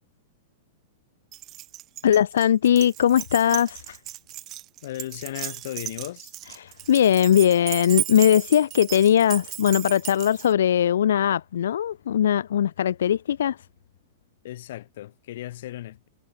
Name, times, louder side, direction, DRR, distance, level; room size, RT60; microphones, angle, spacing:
Keys jangling, 1.3-10.5, right 15 dB, 25° right, 1.4 m, -35 dB
voice 1, 2.0-4.0 6.6-13.6, left 10 dB, 85° left, 0.4 m, -20 dB
voice 2, 4.8-6.3 14.4-16.1, left 14 dB, 55° left, 6.8 m, -36 dB
supercardioid pair, 165°, 0 cm